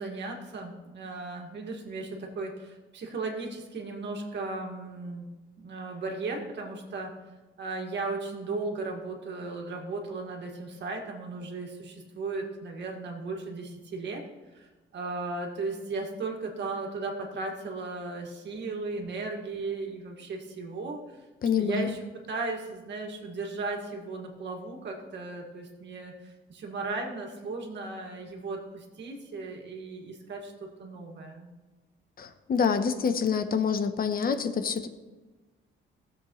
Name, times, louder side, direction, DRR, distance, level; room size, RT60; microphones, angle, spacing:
voice 1, 0.0-5.3 5.6-7.1 7.6-14.2 14.5-21.2 21.6-31.5, right 3 dB, 65° right, 1 dB, 2.1 m, -36 dB
voice 2, 21.4-22.0 32.2-34.9, left 6 dB, 45° left, 9 dB, 1.0 m, -27 dB
16.0 x 7.5 x 3.2 m, 1.2 s
cardioid pair, 90°, 20 cm